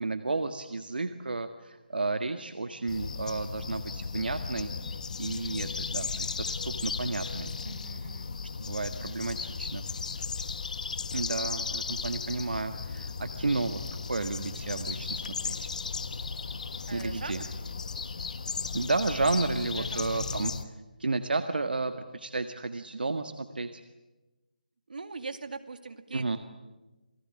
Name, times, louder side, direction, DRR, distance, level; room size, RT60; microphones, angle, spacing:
voice 1, 0.0-4.7 5.2-7.5 8.6-9.8 11.1-13.8 14.1-15.7 16.9-17.4 18.7-20.5 21.0-23.8 26.1-26.4, right 3 dB, 80° right, 8 dB, 1.8 m, -32 dB
sound 1, 2.9-20.6, left 5 dB, 50° left, 1.5 m, -35 dB
voice 2, 7.6-8.4 16.9-17.6 19.8-20.2 24.9-26.4, right 4 dB, 65° right, 9 dB, 2.4 m, -41 dB
28.5 x 18.5 x 10.0 m, 1.1 s
figure-of-eight pair, 165°, 5 cm